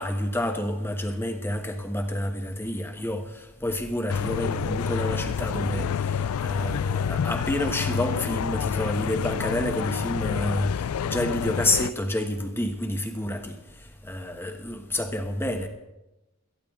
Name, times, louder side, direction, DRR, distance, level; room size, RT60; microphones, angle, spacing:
voice 1, 0.0-3.3 3.6-10.7 11.0-13.6 14.0-15.7, left 1 dB, 10° left, 1.2 m, -28 dB
sound 1, 4.1-11.9, left 7 dB, 85° left, 0.4 m, -28 dB
17.5 x 14.0 x 3.7 m
head